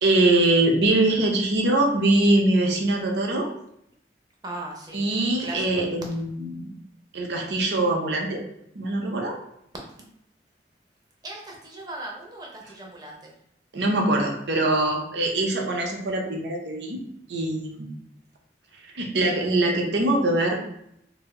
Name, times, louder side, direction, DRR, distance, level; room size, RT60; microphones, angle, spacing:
voice 1, 0.0-3.5 4.9-6.7 7.1-8.4 8.8-9.4 13.7-17.0 17.3-17.9 18.9-20.5, right 2 dB, 80° right, 1 dB, 0.6 m, -23 dB
voice 2, 4.4-5.1 5.4-5.9 10.0-10.1 11.2-13.3, right 2 dB, 20° right, -1 dB, 0.6 m, -38 dB
2.6 x 2.0 x 3.6 m, 0.75 s
head